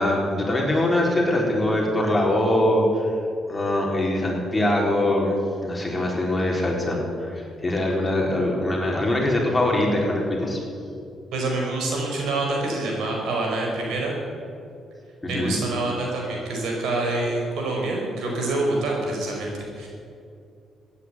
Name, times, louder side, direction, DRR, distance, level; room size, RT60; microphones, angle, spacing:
voice 1, 0.0-3.1 3.5-5.4 5.6-10.6 15.2-15.6, left 1 dB, 15° left, -2 dB, 4.3 m, -23 dB
voice 2, 11.3-14.2 15.3-19.9, right 2 dB, 80° right, -1 dB, 4.9 m, -26 dB
14.5 x 9.9 x 9.3 m, 2.4 s
cardioid pair, 90°, 0 cm